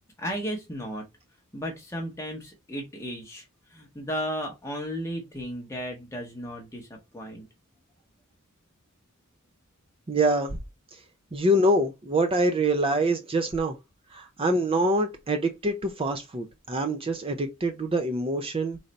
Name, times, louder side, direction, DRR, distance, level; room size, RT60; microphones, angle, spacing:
voice 1, 0.2-1.1 1.5-7.5, equal, 15° left, 0.8 m, -34 dB
voice 2, 10.1-10.6 11.3-13.8 14.1-18.8, right 1 dB, 25° right, 0.5 m, -25 dB
3.8 x 3.3 x 4.0 m
head